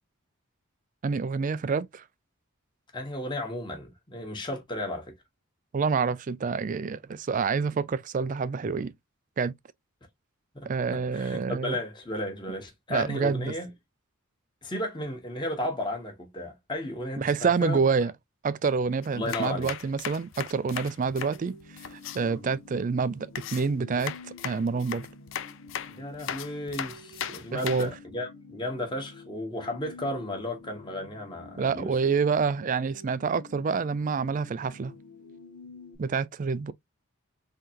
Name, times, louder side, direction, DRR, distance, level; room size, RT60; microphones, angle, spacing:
voice 1, 1.0-2.0 5.7-8.9 9.4-9.5 10.6-11.8 12.9-13.5 17.2-18.1 18.4-21.5 22.1-24.1 24.4-25.1 27.5-27.9 31.6-34.9 36.0-36.7, right 5 dB, 35° right, 0.3 m, -27 dB
voice 2, 2.9-5.1 10.5-10.7 11.1-13.7 14.6-17.8 19.1-19.7 22.2-22.4 25.9-32.0, left 1 dB, 20° left, 1.1 m, -34 dB
sound 1, 19.0-22.2 23.4-27.9, left 9 dB, 60° left, 0.4 m, -37 dB
sound 2, 21.1-35.9, left 2 dB, 85° left, 1.0 m, -49 dB
3.7 x 3.2 x 2.8 m
head